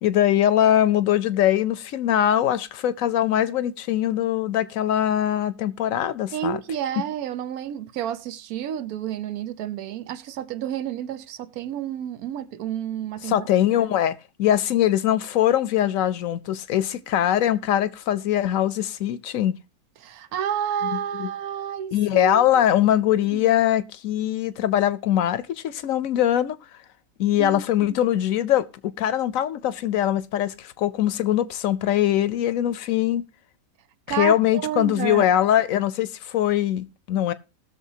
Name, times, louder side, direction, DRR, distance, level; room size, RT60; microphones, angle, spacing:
voice 1, 0.0-6.6 13.3-19.6 21.2-21.3 21.9-26.6 27.2-28.7 29.0-33.2 34.2-37.3, left 11 dB, 70° left, 1.0 m, -22 dB
voice 2, 6.3-13.5 13.8-13.9 20.0-22.4 23.3-23.4 27.4-27.6 27.9-28.0 34.1-35.3, right 9 dB, 85° right, 1.2 m, -30 dB
19.5 x 6.6 x 2.8 m
omnidirectional pair, 1.5 m